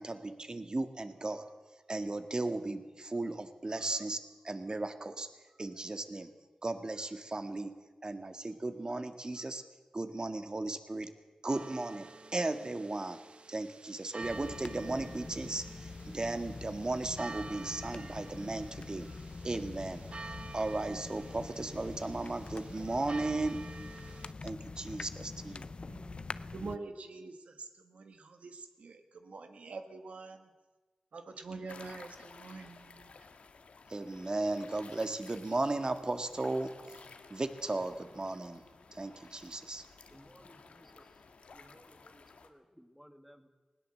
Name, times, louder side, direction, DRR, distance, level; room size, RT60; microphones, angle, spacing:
voice 1, 0.0-1.5 1.9-5.3 5.6-6.3 6.6-9.6 9.9-11.1 11.4-13.2 13.5-20.1 20.5-23.7 24.4-25.7 33.9-38.6 38.9-39.8, right 2 dB, 40° right, 8 dB, 1.8 m, -36 dB
sound 1, 11.5-24.3, right 3 dB, 60° right, 0.9 m, -50 dB
sound 2, 14.2-26.8, left 3 dB, 55° left, 0.7 m, -45 dB
voice 2, 25.9-30.4 31.1-33.1, right 3 dB, 85° right, 7 dB, 1.6 m, -46 dB
sound 3, 31.7-42.5, left 4 dB, 85° left, 1.7 m, -55 dB
voice 3, 40.1-41.2 41.5-43.5, equal, 5° right, 8 dB, 1.9 m, -59 dB
20.0 x 17.0 x 7.7 m, 1.3 s
cardioid pair, 55°, 2 cm